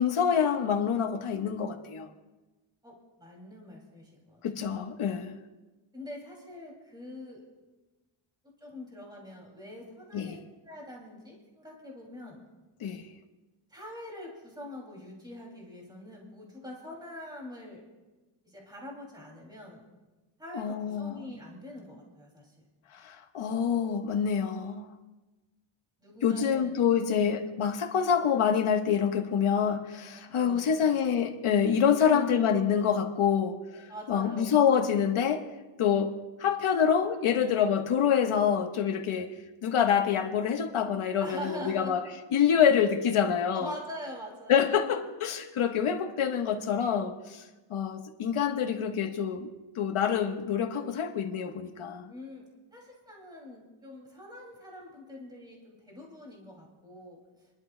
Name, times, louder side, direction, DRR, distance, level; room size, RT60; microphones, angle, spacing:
voice 1, 0.0-2.1 4.4-5.4 10.1-10.4 12.8-13.1 20.5-21.3 22.9-24.8 26.2-35.4 35.8-36.1 36.4-39.3 39.6-42.0 42.3-43.7 44.5-47.4 47.7-49.5 49.7-52.1, left 7 dB, 85° left, 1.3 m, -26 dB
voice 2, 2.8-4.4 5.9-7.4 8.6-12.4 13.7-17.8 18.4-19.9 20.4-22.6 26.0-27.3 30.1-30.9 32.1-32.4 33.9-34.6 41.2-42.0 43.5-44.8 52.1-57.2, left 1 dB, 10° right, 2.7 m, -44 dB
29.0 x 11.5 x 2.3 m
wide cardioid pair, 165°, 49 cm